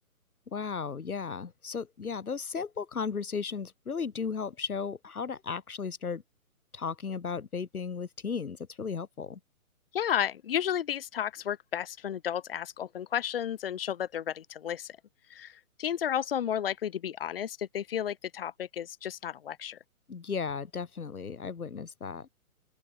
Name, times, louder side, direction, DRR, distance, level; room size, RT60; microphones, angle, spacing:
voice 1, 0.5-6.2 6.7-9.4 20.1-22.3, left 5 dB, 85° left, 7.9 m, -35 dB
voice 2, 9.9-15.0 15.3-19.8, left 9 dB, 40° left, 2.6 m, -32 dB
open air
hypercardioid pair, 170°, 43 cm